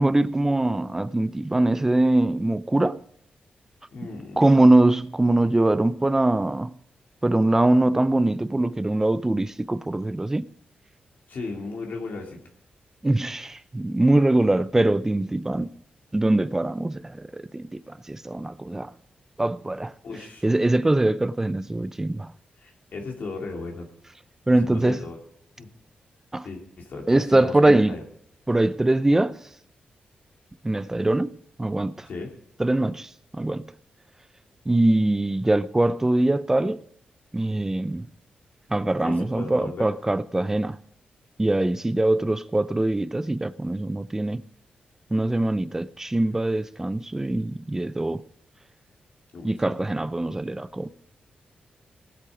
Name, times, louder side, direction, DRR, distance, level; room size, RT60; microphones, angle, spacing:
voice 1, 0.0-3.0 4.4-6.7 7.2-10.5 13.0-15.7 16.1-18.9 19.4-19.9 20.4-22.3 24.5-25.0 26.3-26.5 27.1-28.0 28.5-29.4 30.6-32.1 32.6-33.7 34.7-36.8 37.3-38.1 38.7-40.8 41.4-44.4 45.1-48.2 49.4-50.9, right 2 dB, 15° right, 0.5 m, -22 dB
voice 2, 3.9-4.4 11.3-12.4 20.0-20.4 22.6-23.9 24.6-25.2 25.6-25.7 26.4-28.0 32.0-32.3 39.0-39.9 49.3-49.8, left 3 dB, 65° left, 2.5 m, -36 dB
18.5 x 8.5 x 5.0 m
wide cardioid pair, 115°, 3 cm